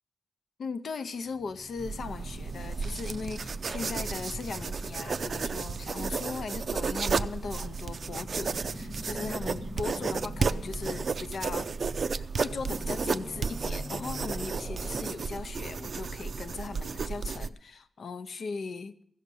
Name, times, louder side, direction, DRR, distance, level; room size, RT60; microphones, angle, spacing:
voice 1, 0.6-11.7 12.1-19.0, left 4 dB, 65° left, 11 dB, 0.7 m, -38 dB
sound 1, 1.1-15.2, left 2 dB, 15° left, 0.5 m, -46 dB
sound 2, 1.8-17.5, right 5 dB, 50° right, 0.4 m, -33 dB
15.0 x 6.6 x 8.3 m, 0.69 s
wide cardioid pair, 150°, 0 cm